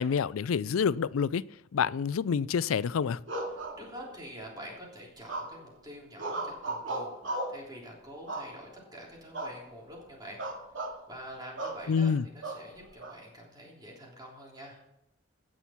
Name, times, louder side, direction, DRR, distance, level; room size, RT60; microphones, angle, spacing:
voice 1, 0.0-1.4 1.7-3.2 11.9-12.2, left 6 dB, 85° left, 19 dB, 0.4 m, -27 dB
sound 1, 3.3-4.3 5.3-5.8 6.2-7.6 8.3-8.9 9.3-9.6 9.9-10.1 10.4-11.0 11.6-11.8 12.4-13.1, right 2 dB, 65° right, 2.4 m, -36 dB
voice 2, 3.4-10.4 10.7-14.8, equal, 20° right, -3 dB, 3.4 m, -46 dB
17.0 x 6.2 x 5.7 m, 0.83 s
head